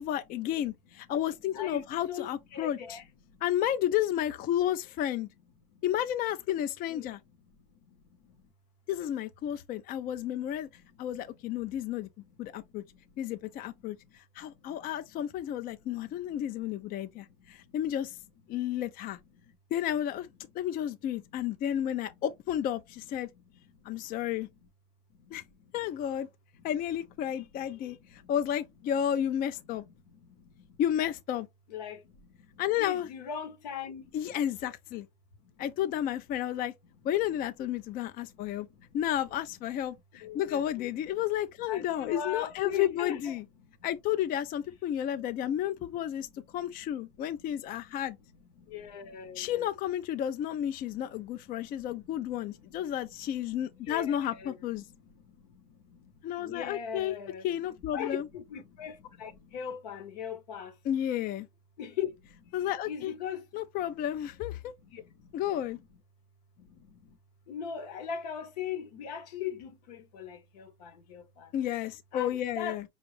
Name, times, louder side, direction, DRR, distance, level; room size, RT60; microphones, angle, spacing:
voice 1, 0.0-3.0 3.4-5.3 5.8-7.2 8.9-10.7 11.0-12.1 12.4-12.8 13.2-18.2 18.5-19.2 19.7-20.3 20.5-23.3 23.9-24.5 25.3-25.4 25.7-26.3 26.6-29.8 30.8-31.5 32.6-33.1 34.1-35.1 35.6-36.7 37.0-38.7 38.9-43.4 43.8-48.2 49.3-54.9 56.2-57.1 57.4-58.3 60.8-61.5 62.5-63.1 63.5-64.7 65.3-65.8 71.5-72.8, left 11 dB, 45° left, 0.4 m, -32 dB
voice 2, 1.5-3.4 5.7-5.8 6.9-7.1 7.8-8.4 10.8-11.0 11.8-11.9 12.3-13.2 13.8-14.9 15.7-15.8 16.1-16.4 16.8-17.7 19.3-19.4 23.3-24.2 25.2-25.7 26.6-26.7 27.5-27.6 27.9-28.3 29.7-30.8 31.7-34.2 35.4-35.6 37.8-37.9 38.3-38.9 40.1-40.9 41.6-43.3 43.6-43.9 47.4-47.5 47.8-47.9 48.6-49.7 50.9-52.7 53.2-53.3 53.7-57.5 57.9-60.7 61.8-62.6 62.9-63.4 64.8-65.3 65.8-65.9 66.6-67.2 67.5-71.5 72.1-72.8, left 8 dB, 85° left, 1.0 m, -41 dB
5.1 x 2.4 x 3.1 m
supercardioid pair, 100°, 20 cm